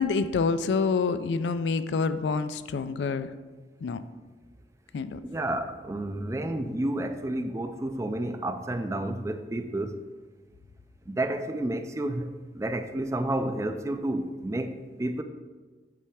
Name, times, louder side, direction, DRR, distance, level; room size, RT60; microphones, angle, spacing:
voice 1, 0.0-3.3 3.8-4.0 4.9-5.2, left 4 dB, 80° left, 12 dB, 0.4 m, -27 dB
voice 2, 5.3-10.0 11.1-15.2, right 1 dB, 15° right, 8 dB, 0.4 m, -30 dB
8.4 x 3.3 x 4.8 m, 1.3 s
head